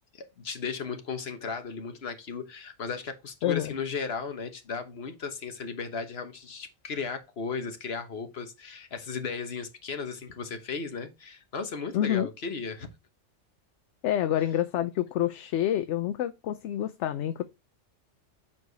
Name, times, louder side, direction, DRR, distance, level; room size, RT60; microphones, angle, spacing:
voice 1, 0.1-12.9, left 5 dB, 55° left, 1.4 m, -35 dB
voice 2, 3.4-3.7 11.9-12.3 14.0-17.4, left 11 dB, 75° left, 0.9 m, -27 dB
7.6 x 4.7 x 3.9 m
omnidirectional pair, 1.3 m